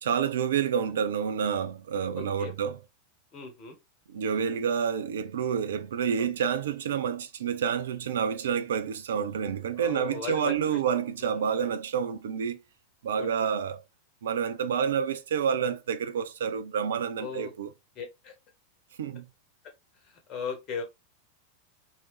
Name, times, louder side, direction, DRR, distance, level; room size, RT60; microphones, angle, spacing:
voice 1, 0.0-2.8 4.1-12.6 13.0-13.8 14.2-17.7 19.0-19.3, right 7 dB, 60° right, 0.4 m, -29 dB
voice 2, 2.1-2.5 3.3-3.8 9.8-10.8 11.2-11.4 13.2-13.3 17.2-17.5 17.9-18.3 20.3-20.8, left 6 dB, 35° left, 1.2 m, -37 dB
3.1 x 2.7 x 3.1 m
figure-of-eight pair, 90°, 0 cm